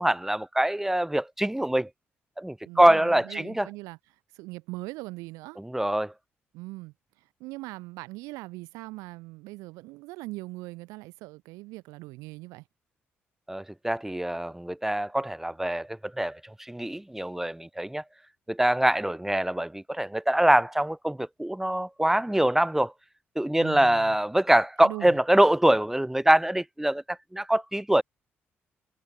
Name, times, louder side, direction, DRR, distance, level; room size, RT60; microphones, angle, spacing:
voice 1, 0.0-1.9 2.4-3.7 5.6-6.1 13.5-16.4 16.7-18.0 18.5-22.9 23.4-28.0, right 1 dB, 5° right, 0.4 m, -24 dB
voice 2, 2.7-4.0 4.3-5.6 6.5-6.9 7.4-12.6 23.6-24.2 24.8-25.1, right 22 dB, 75° right, 0.3 m, -40 dB
hypercardioid pair, 45°, 6 cm